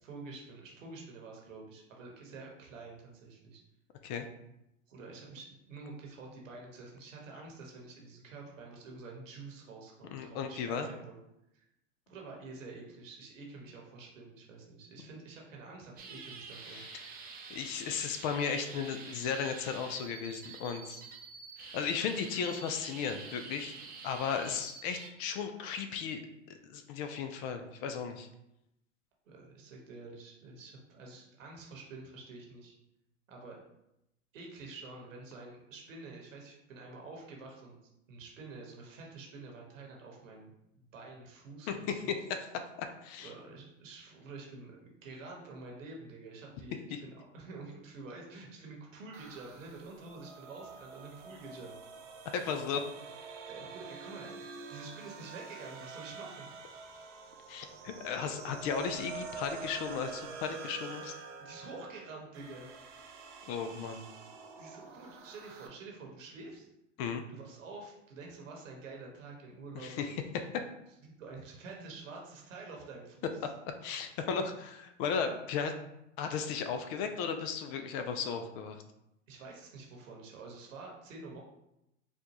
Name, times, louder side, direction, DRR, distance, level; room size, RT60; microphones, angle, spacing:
voice 1, 0.0-3.6 4.9-11.2 11.5-11.7 12.1-16.8 29.3-32.7 33.3-33.6 34.3-37.8 38.1-42.1 43.2-51.8 53.5-56.5 58.5-58.6 61.4-62.7 64.6-66.7 67.3-70.2 71.0-73.3 79.3-81.4, right 3 dB, 80° right, -1 dB, 1.3 m, -48 dB
voice 2, 10.1-10.9 16.7-17.0 17.5-21.0 21.6-23.7 24.0-26.2 26.5-28.3 41.7-41.8 42.8-43.3 46.9-47.0 52.3-52.8 57.5-61.1 63.5-64.0 67.0-67.2 69.8-70.6 73.4-75.7 76.2-78.8, left 6 dB, 40° left, 7 dB, 0.4 m, -35 dB
sound 1, 16.0-25.1, right 5 dB, 25° right, 0.5 m, -48 dB
sound 2, 49.1-65.7, right 5 dB, 65° right, 0.8 m, -47 dB
4.3 x 2.3 x 2.9 m, 0.85 s
hypercardioid pair, 105°, 38 cm